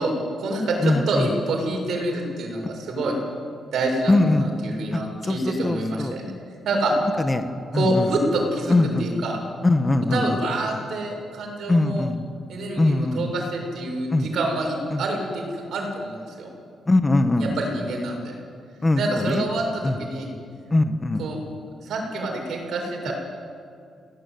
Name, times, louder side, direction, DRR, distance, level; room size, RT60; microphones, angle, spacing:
voice 1, 0.0-3.1 3.7-6.3 6.7-6.9 7.7-9.4 10.1-12.1 12.5-15.4 15.7-16.5 17.4-18.3 19.0-20.3 21.2-21.4 21.8-23.1, right 2 dB, 65° right, 1 dB, 7.2 m, -27 dB
voice 2, 0.8-1.3 4.1-4.5 4.9-6.1 7.2-7.4 7.7-8.1 8.7-9.1 9.6-10.4 11.7-12.2 12.8-13.3 14.1-14.3 14.9-15.0 16.9-17.6 18.8-19.4 19.8-20.0 20.7-21.2, left 2 dB, 15° left, 8 dB, 1.4 m, -21 dB
29.0 x 18.5 x 9.5 m, 2.3 s
wide cardioid pair, 165°, 0 cm